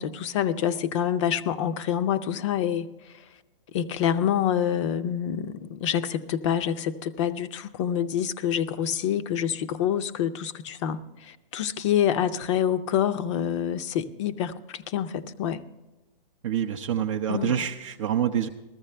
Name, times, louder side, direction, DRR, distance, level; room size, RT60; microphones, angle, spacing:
voice 1, 0.0-2.9 3.7-15.6 17.3-17.6, left 9 dB, 30° left, 0.5 m, -27 dB
voice 2, 16.4-18.5, right 9 dB, 35° right, 0.5 m, -26 dB
14.5 x 14.0 x 3.3 m
hypercardioid pair, 150°, 29 cm